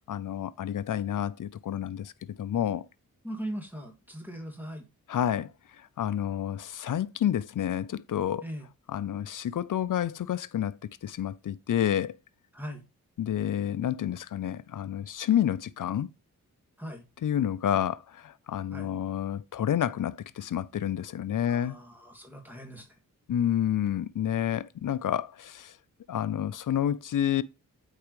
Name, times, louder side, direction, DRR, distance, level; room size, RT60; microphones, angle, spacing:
voice 1, 0.1-2.1 2.4-2.8 5.1-5.5 5.8-8.4 8.9-12.2 13.2-16.1 17.2-21.8 23.3-25.7 26.1-27.4, left 10 dB, 60° left, 0.6 m, -29 dB
voice 2, 3.2-4.8 8.4-8.7 12.5-12.8 16.8-17.0 18.7-18.9 21.5-22.9, equal, 5° right, 2.3 m, -39 dB
8.4 x 4.6 x 3.1 m
cardioid pair, 40°, 36 cm